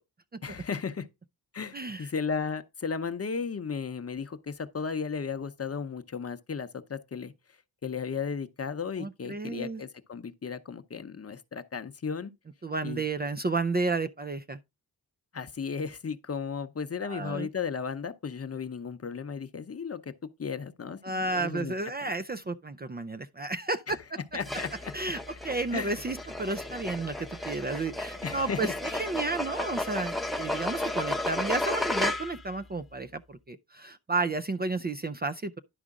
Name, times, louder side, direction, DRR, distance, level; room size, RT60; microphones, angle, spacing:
voice 1, 0.4-1.1 1.5-7.3 7.8-12.3 12.8-13.0 15.3-20.1 20.4-21.7 23.9-24.0 24.3-24.7 25.7-26.0 28.2-28.7, left 5 dB, 40° left, 0.8 m, -35 dB
voice 2, 1.7-2.1 9.0-9.8 12.6-14.6 17.0-17.5 21.0-24.2 24.9-35.6, right 3 dB, 25° right, 0.4 m, -32 dB
sound 1, 24.4-32.5, left 1 dB, ahead, 0.8 m, -33 dB
11.0 x 5.0 x 3.7 m
wide cardioid pair, 95°, 39 cm